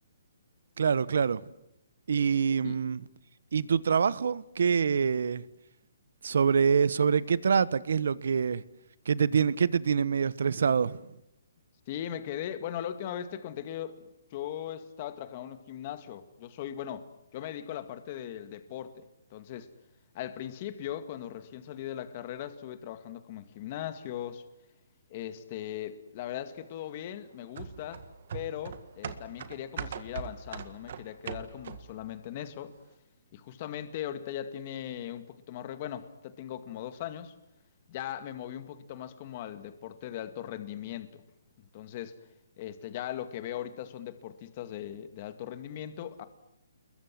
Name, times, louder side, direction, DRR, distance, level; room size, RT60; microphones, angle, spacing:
voice 1, 0.8-1.4 2.1-3.0 3.5-5.4 6.2-8.6 9.1-11.0, right 6 dB, 65° right, 1.1 m, -25 dB
voice 2, 11.9-14.0 14.3-19.0 19.3-19.7 20.1-24.4 25.1-28.0 28.3-32.7 33.3-37.3 37.9-41.2 41.6-42.2 42.6-46.3, left 11 dB, 30° left, 2.0 m, -39 dB
sound 1, 27.6-32.0 32.4-32.5, right 7 dB, 50° right, 1.8 m, -40 dB
28.5 x 22.0 x 7.7 m
hypercardioid pair, 165°, 0 cm